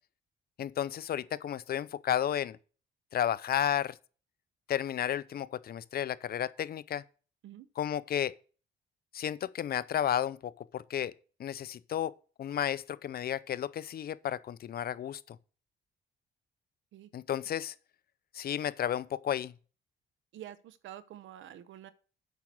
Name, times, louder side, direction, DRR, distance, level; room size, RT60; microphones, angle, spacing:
voice 1, 0.6-2.6 3.1-4.0 4.7-7.0 7.8-8.3 9.1-11.1 11.4-12.1 12.4-15.4 17.1-17.7 18.3-19.5, left 10 dB, 50° left, 0.5 m, -32 dB
voice 2, 20.3-21.9, right 12 dB, 75° right, 0.9 m, -47 dB
8.2 x 5.9 x 6.1 m
cardioid pair, 90°, 20 cm